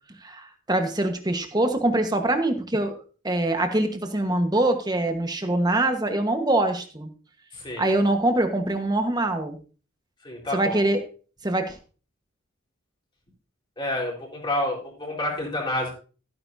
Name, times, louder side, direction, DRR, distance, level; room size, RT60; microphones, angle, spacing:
voice 1, 0.2-7.1 7.8-9.6 10.5-11.0 11.4-11.8, right 1 dB, 20° right, 6 dB, 1.4 m, -24 dB
voice 2, 7.5-7.9 10.2-10.9 13.8-15.9, left 1 dB, 25° left, -2 dB, 4.4 m, -29 dB
15.0 x 9.5 x 2.8 m, 0.38 s
head